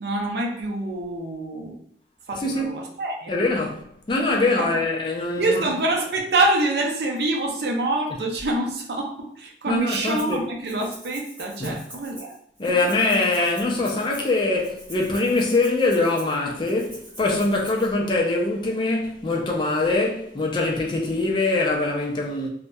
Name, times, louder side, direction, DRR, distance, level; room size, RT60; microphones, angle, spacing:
voice 1, 0.0-1.8 2.3-3.4 4.6-4.7 5.4-12.3, right 2 dB, 65° right, 0.5 m, -26 dB
voice 2, 2.3-2.8 3.3-5.7 9.7-10.4 11.6-11.8 12.6-22.5, left 2 dB, 25° left, 0.3 m, -23 dB
Rattle (instrument), 9.9-10.4 10.7-17.9, equal, 10° right, 1.1 m, -44 dB
2.6 x 2.1 x 2.2 m
head